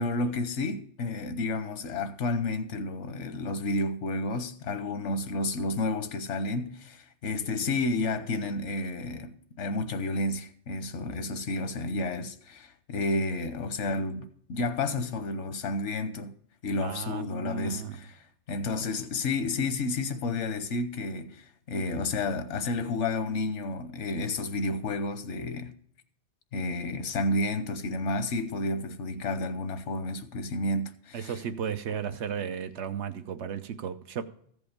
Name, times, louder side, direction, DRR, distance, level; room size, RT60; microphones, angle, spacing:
voice 1, 0.0-16.3 16.6-25.7 26.5-31.4, left 2 dB, 85° left, 1.2 m, -31 dB
voice 2, 16.8-18.0 31.1-34.2, right 7 dB, 75° right, 1.0 m, -34 dB
14.5 x 5.3 x 5.0 m
omnidirectional pair, 1.2 m